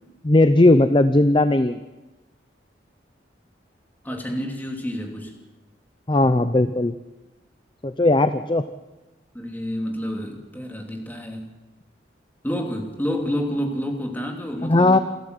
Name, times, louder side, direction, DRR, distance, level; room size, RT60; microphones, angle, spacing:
voice 1, 0.2-1.8 6.1-6.9 7.8-8.6 14.6-15.0, left 2 dB, 25° left, 11 dB, 0.6 m, -17 dB
voice 2, 4.0-5.3 9.3-11.5 12.4-15.0, equal, 10° left, 2 dB, 2.8 m, -29 dB
28.5 x 11.5 x 8.0 m, 1.1 s
head